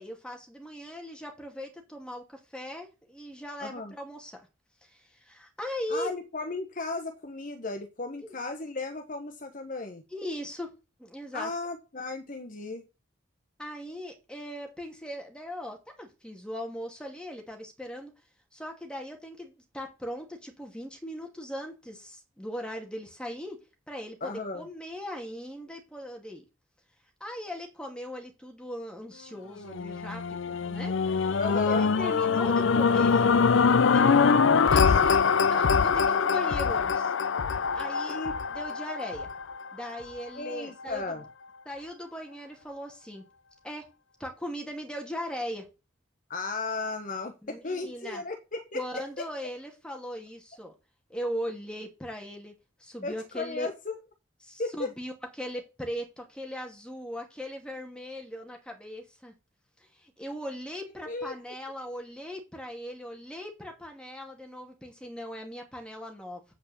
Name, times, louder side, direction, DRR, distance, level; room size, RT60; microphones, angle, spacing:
voice 1, 0.0-4.5 4.8-6.1 8.2-8.3 10.1-10.7 11.0-11.5 13.6-18.1 18.5-23.6 23.9-26.4 27.2-30.9 31.5-33.4 33.9-34.2 34.7-35.2 35.5-37.1 37.7-38.2 38.5-39.3 39.7-41.2 41.7-43.2 43.6-43.9 44.2-45.7 47.4-48.2 48.7-50.7 51.1-52.5 52.8-53.7 54.4-59.3 59.8-66.4, equal, 5° left, 2.4 m, -39 dB
voice 2, 3.6-3.9 5.9-10.0 11.3-12.9 24.2-24.7 31.4-31.9 38.1-38.3 40.3-41.2 46.3-48.8 49.2-49.3 53.0-53.9 54.6-54.9 61.1-61.3, left 3 dB, 40° left, 1.1 m, -35 dB
sound 1, 29.6-39.9 40.5-40.6, left 5 dB, 70° left, 0.5 m, -24 dB
8.5 x 5.3 x 7.1 m
head